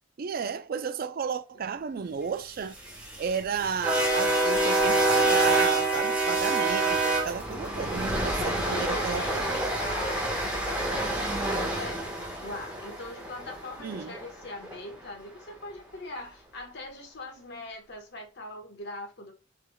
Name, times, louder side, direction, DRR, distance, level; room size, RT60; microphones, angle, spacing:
voice 1, 0.2-2.8 3.2-9.4 13.8-14.1, right 6 dB, 45° right, 0.4 m, -33 dB
sound 1, 2.6-14.8, right 2 dB, 5° right, 1.3 m, -27 dB
voice 2, 8.2-12.0 12.4-19.3, left 2 dB, 55° left, 1.3 m, -41 dB
5.9 x 3.4 x 2.2 m
head